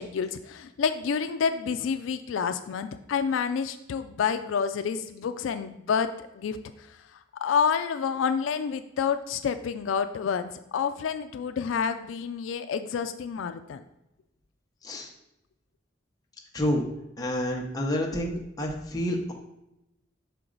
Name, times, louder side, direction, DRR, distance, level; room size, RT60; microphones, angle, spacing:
voice 1, 0.0-7.0 7.4-13.8, left 6 dB, 80° left, 9 dB, 0.3 m, -29 dB
voice 2, 17.2-19.3, equal, 20° left, 0 dB, 0.8 m, -28 dB
6.1 x 4.5 x 3.9 m, 0.87 s
head